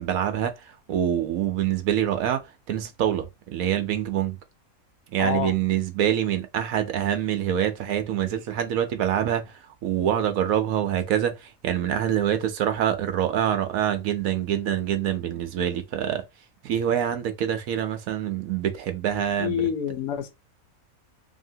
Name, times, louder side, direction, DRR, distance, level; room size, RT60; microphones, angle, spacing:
voice 1, 0.0-4.4 5.1-16.2 16.6-19.7, right 10 dB, 75° right, 1.0 m, -25 dB
voice 2, 5.2-5.5 19.4-20.3, left 8 dB, 85° left, 1.2 m, -27 dB
2.8 x 2.7 x 2.7 m
omnidirectional pair, 1.5 m